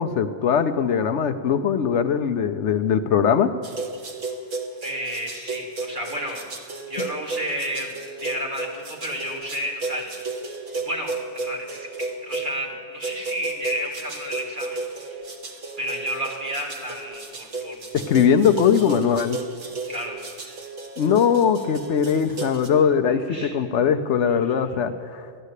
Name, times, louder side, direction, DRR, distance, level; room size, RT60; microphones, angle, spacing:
voice 1, 0.0-3.5 7.0-7.1 17.9-19.4 21.0-25.3, left 7 dB, 70° left, 9 dB, 1.0 m, -21 dB
sound 1, 3.6-12.5 13.0-22.7, right 3 dB, 85° right, 1.8 m, -33 dB
voice 2, 4.8-6.4 6.8-10.4 10.7-15.3 15.8-17.8 19.9-20.3 23.1-23.6, equal, 40° right, -2 dB, 2.6 m, -32 dB
14.5 x 12.0 x 8.2 m, 2.2 s
omnidirectional pair, 1.3 m